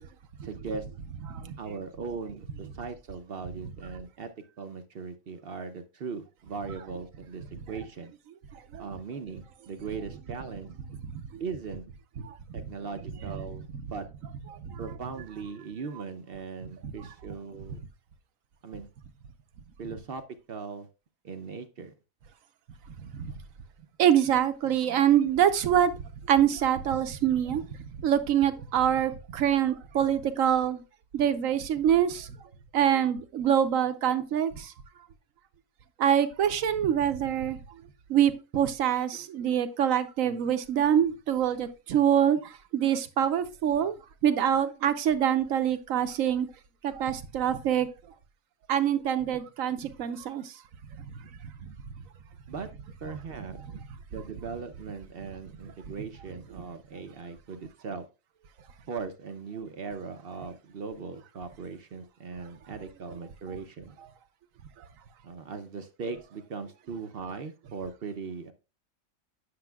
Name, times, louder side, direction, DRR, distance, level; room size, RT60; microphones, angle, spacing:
voice 1, 0.4-0.9 1.6-4.3 4.6-8.1 8.8-10.7 11.4-11.8 12.5-14.1 14.8-17.8 18.6-18.9 19.8-20.2 20.5-20.9 21.2-21.9 52.5-52.7 53.0-53.6 54.1-58.1 58.9-64.0 65.2-68.5, right 5 dB, 55° right, 0.8 m, -39 dB
voice 2, 12.2-12.6 14.6-14.8 16.8-16.9 23.1-23.3 24.0-25.9 26.3-27.7 28.0-30.8 31.1-32.3 32.7-34.7 36.0-37.6 38.1-44.0 44.2-46.5 46.8-47.9 48.7-50.5 51.7-51.8, right 9 dB, 75° right, 1.1 m, -25 dB
9.6 x 6.8 x 2.3 m
omnidirectional pair, 1.4 m